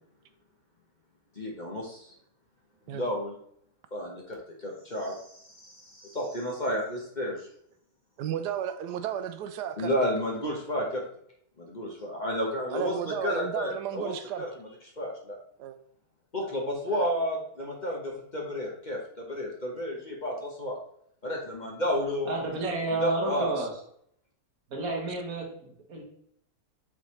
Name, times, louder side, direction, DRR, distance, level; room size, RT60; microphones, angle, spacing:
voice 1, 1.4-2.0 2.9-3.3 3.9-5.2 5.6-5.7 6.0-7.4 9.8-11.0 11.6-14.1 14.4-14.5 15.0-15.4 16.3-20.8 21.2-22.3 23.0-23.5, equal, 30° left, -2 dB, 1.3 m, -31 dB
voice 2, 8.2-9.9 12.7-14.4 15.6-15.8 16.9-17.1 22.6-22.8 23.3-23.7, right 10 dB, 85° right, 9 dB, 1.2 m, -34 dB
voice 3, 22.3-23.7 24.7-26.0, right 2 dB, 60° right, 0 dB, 1.9 m, -31 dB
7.8 x 4.1 x 3.2 m, 0.68 s
omnidirectional pair, 1.7 m